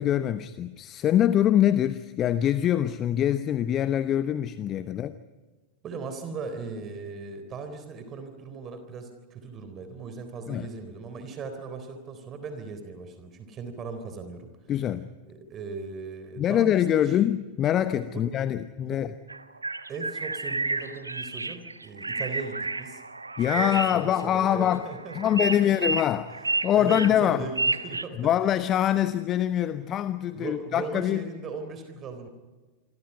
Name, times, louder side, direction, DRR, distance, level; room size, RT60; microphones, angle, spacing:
voice 1, 0.0-5.2 10.5-10.7 14.7-15.1 16.4-19.1 23.4-24.9 25.1-26.3 26.6-27.5 28.2-31.3, left 11 dB, 30° left, 0.9 m, -24 dB
voice 2, 5.8-14.5 15.3-17.1 18.1-18.3 18.8-19.0 19.9-23.0 23.5-25.9 26.7-28.3 30.3-32.3, right 4 dB, 30° right, 3.8 m, -38 dB
sound 1, 19.3-28.0, right 3 dB, 80° right, 1.2 m, -31 dB
28.5 x 24.5 x 5.7 m
figure-of-eight pair, 90°, 0 cm